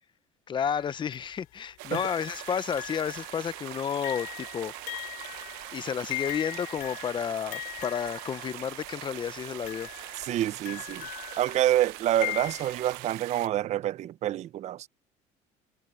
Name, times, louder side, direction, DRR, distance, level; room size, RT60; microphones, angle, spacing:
voice 1, 0.5-4.7 5.7-9.9, left 8 dB, 30° left, 0.8 m, -31 dB
sound 1, 0.6-1.2 1.9-8.9 9.6-13.0, left 19 dB, 70° left, 4.0 m, -40 dB
sound 2, 1.8-13.5, right 21 dB, 85° right, 1.0 m, -42 dB
voice 2, 10.2-11.1 11.4-14.9, right 12 dB, 50° right, 0.8 m, -27 dB
cardioid pair, 115°, 15 cm